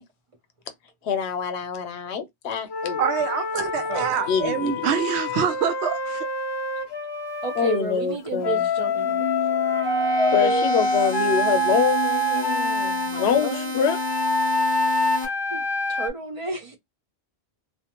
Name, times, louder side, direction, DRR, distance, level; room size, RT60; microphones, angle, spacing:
voice 1, 1.0-3.0 4.3-4.9 7.6-8.7 10.3-14.0, left 7 dB, 90° left, 0.9 m, -25 dB
Wind instrument woodwind instrument, 2.7-7.8 8.4-13.1 13.9-16.1, left 1 dB, 45° left, 0.3 m, -26 dB
voice 2, 3.0-6.3, right 8 dB, 90° right, 0.9 m, -25 dB
voice 3, 7.4-9.3 9.8-10.7 11.2-11.3 13.1-13.7 15.5-16.8, right 2 dB, 45° right, 0.4 m, -31 dB
sound 1, 8.8-15.3, left 3 dB, 15° right, 0.8 m, -31 dB
2.4 x 2.1 x 2.8 m
omnidirectional pair, 1.1 m